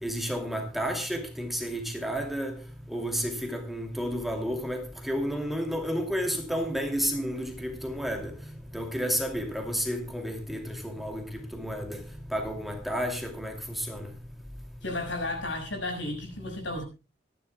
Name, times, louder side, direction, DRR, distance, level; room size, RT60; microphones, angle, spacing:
voice 1, 0.0-2.5 2.9-8.3 8.7-12.0 12.3-14.1, equal, ahead, 2.6 m, -31 dB
voice 2, 14.8-16.8, left 2 dB, 70° left, 6.2 m, -33 dB
25.0 x 11.5 x 2.3 m
head